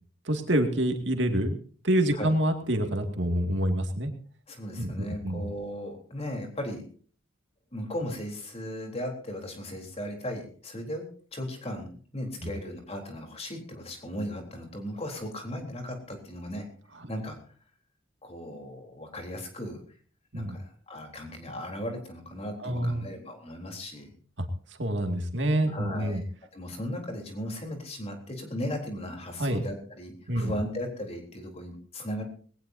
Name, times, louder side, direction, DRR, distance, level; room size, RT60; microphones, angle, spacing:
voice 1, 0.3-1.6 1.8-4.1 4.8-5.4 20.3-20.5 22.6-23.1 24.4-24.5 24.8-26.2 29.4-29.6 30.3-30.5, right 1 dB, 65° right, 5 dB, 2.3 m, -27 dB
voice 2, 4.5-6.9 7.7-16.7 17.1-17.4 18.2-19.8 20.3-24.1 25.7-26.2 26.5-32.2, equal, 30° left, 3 dB, 3.8 m, -37 dB
20.5 x 18.0 x 2.8 m, 0.43 s
head